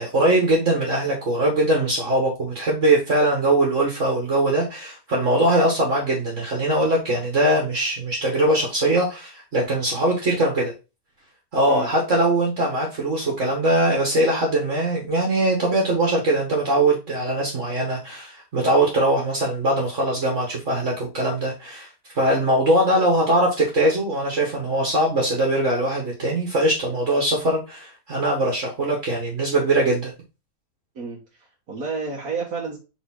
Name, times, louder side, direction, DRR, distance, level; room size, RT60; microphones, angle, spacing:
voice 1, 0.0-10.7 11.5-21.9 22.2-30.1, right 1 dB, 50° right, -1 dB, 2.1 m, -21 dB
voice 2, 31.0-32.8, right 4 dB, 75° right, -2 dB, 1.9 m, -31 dB
5.2 x 5.0 x 3.8 m, 0.29 s
omnidirectional pair, 1.6 m